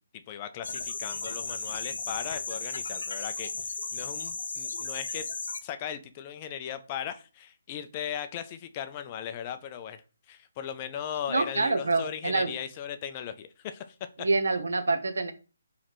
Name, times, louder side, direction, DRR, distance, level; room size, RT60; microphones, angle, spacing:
voice 1, 0.0-3.5 3.9-5.3 5.6-10.0 10.3-14.0, left 9 dB, 20° left, 0.3 m, -37 dB
sound 1, 0.6-5.6, left 4 dB, 60° left, 0.6 m, -35 dB
voice 2, 11.3-12.5 14.2-15.3, right 3 dB, 80° right, 0.8 m, -26 dB
4.1 x 3.1 x 3.0 m
hypercardioid pair, 175°, 0 cm